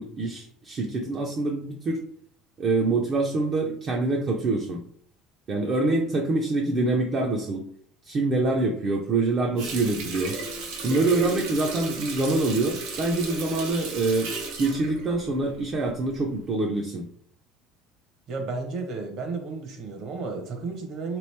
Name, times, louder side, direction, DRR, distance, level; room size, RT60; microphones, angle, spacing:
voice 1, 0.0-2.0 2.6-4.8 5.5-7.6 8.0-10.4 10.8-14.3 14.6-17.1, right 2 dB, 30° right, 0 dB, 0.4 m, -25 dB
Water tap faucet, 9.6-15.9 16.3-16.5, right 3 dB, 80° right, 1.0 m, -34 dB
voice 2, 18.3-21.2, right 4 dB, 45° right, 4 dB, 0.8 m, -33 dB
3.4 x 3.0 x 3.2 m, 0.63 s
cardioid pair, 160°, 0 cm